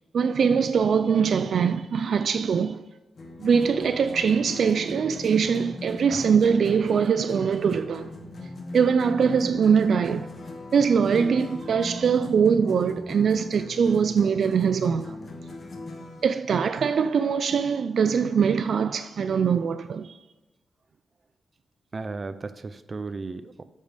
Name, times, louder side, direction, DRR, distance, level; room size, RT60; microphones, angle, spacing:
voice 1, 0.1-2.8 3.4-8.1 8.7-10.3 10.7-15.2 16.2-20.2, right 6 dB, 70° right, 0.3 m, -22 dB
sound 1, 3.2-16.3, left 2 dB, 50° left, 1.4 m, -39 dB
voice 2, 21.9-23.6, right 3 dB, 35° right, 0.6 m, -35 dB
8.7 x 5.5 x 5.2 m
wide cardioid pair, 105°, 0 cm